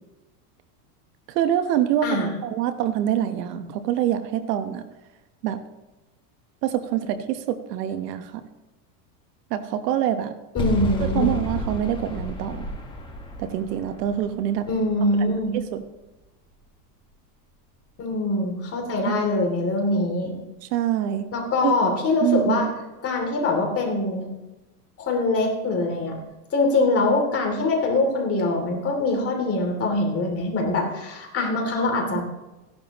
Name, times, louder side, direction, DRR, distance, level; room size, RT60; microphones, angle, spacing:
voice 1, 1.3-2.1 2.4-4.8 5.4-5.6 6.6-8.4 9.5-10.3 11.0-12.7 13.4-14.7 15.3-15.8 19.0-19.3 20.7-21.2 21.6-21.7 22.2-22.7, right 11 dB, 85° right, 9 dB, 1.3 m, -25 dB
voice 2, 2.0-2.4 10.5-11.2 14.7-15.5 18.0-20.4 21.3-22.7 23.0-24.3 25.0-26.2 26.5-32.2, left 2 dB, 30° left, 1 dB, 2.9 m, -23 dB
sound 1, 10.6-15.7, left 1 dB, 10° left, 1.6 m, -32 dB
15.0 x 11.0 x 3.0 m, 1.1 s
supercardioid pair, 145°, 47 cm